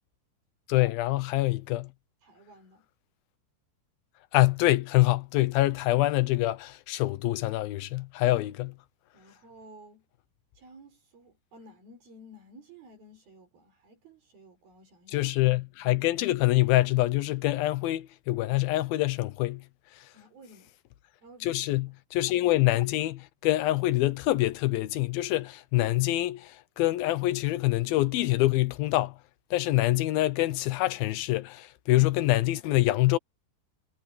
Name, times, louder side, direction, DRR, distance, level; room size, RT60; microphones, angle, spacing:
voice 1, 0.7-1.9 4.3-8.7 15.1-19.6 21.4-29.1 29.5-33.2, left 17 dB, 75° left, 2.5 m, -25 dB
voice 2, 2.2-2.9 9.1-10.1 10.5-15.3 20.1-20.7 21.2-21.9, right 1 dB, 60° right, 7.3 m, -53 dB
omnidirectional pair, 4.8 m